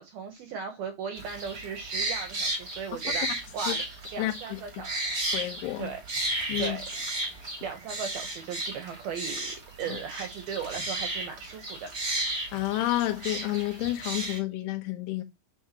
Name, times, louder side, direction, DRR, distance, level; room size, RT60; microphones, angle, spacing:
voice 1, 0.0-3.8 4.1-4.9 5.8-6.0 6.6-6.9 7.6-11.9, right 6 dB, 75° right, 2.3 m, -37 dB
sound 1, 1.2-14.4, right 2 dB, 30° right, 1.6 m, -34 dB
voice 2, 4.2-4.6 5.3-5.9 6.5-6.8 9.9-10.0 12.5-15.2, left 16 dB, 75° left, 3.4 m, -30 dB
9.8 x 6.0 x 2.9 m
omnidirectional pair, 5.8 m